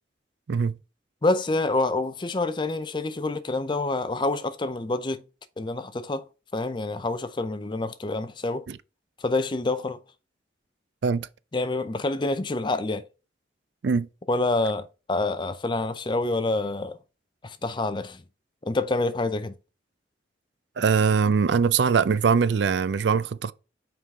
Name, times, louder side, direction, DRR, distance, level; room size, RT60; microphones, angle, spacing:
voice 1, 0.5-0.8 8.7-8.8 11.0-11.3 13.8-14.1 20.8-23.5, right 5 dB, 75° right, 0.4 m, -22 dB
voice 2, 1.2-5.2 5.6-6.3 6.5-8.7 9.2-10.0 11.5-13.1 14.3-17.0 17.4-18.2 18.7-19.5, left 2 dB, 25° left, 0.5 m, -27 dB
5.9 x 4.8 x 3.6 m
head